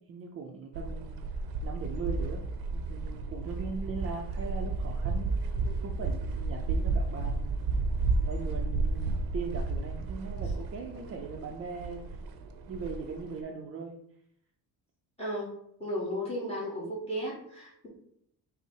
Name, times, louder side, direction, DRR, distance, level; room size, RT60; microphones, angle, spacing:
voice 1, 0.1-1.1 1.6-2.4 2.7-5.3 5.8-7.7 8.2-12.0 12.7-14.0, right 5 dB, 40° right, 1 dB, 0.5 m, -39 dB
sound 1, 0.7-13.4, right 3 dB, 80° right, 0.6 m, -32 dB
voice 2, 15.2-15.5 15.8-17.9, equal, 15° left, -4 dB, 1.2 m, -34 dB
5.4 x 2.0 x 4.6 m, 0.72 s
cardioid pair, 160°, 36 cm